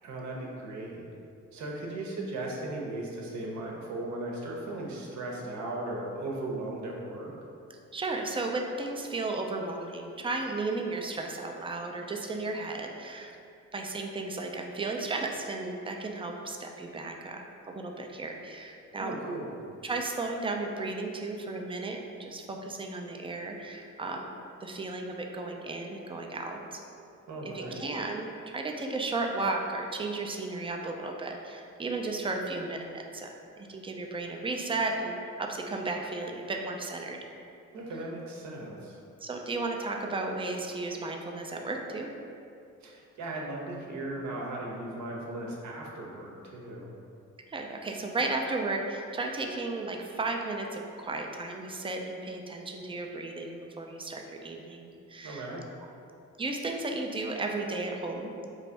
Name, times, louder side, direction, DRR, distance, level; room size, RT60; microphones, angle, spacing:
voice 1, 0.0-1.1 1.5-7.3 19.0-19.6 27.3-27.8 37.7-39.0 42.8-46.9 55.2-55.6, right 2 dB, 70° right, -1 dB, 0.8 m, -37 dB
voice 2, 7.7-13.4 13.7-19.1 19.8-24.4 24.6-26.8 27.4-37.2 39.2-42.1 47.5-55.5 56.4-58.5, right 3 dB, 20° right, 2 dB, 0.4 m, -34 dB
3.1 x 2.5 x 4.4 m, 2.5 s
cardioid pair, 90°, 30 cm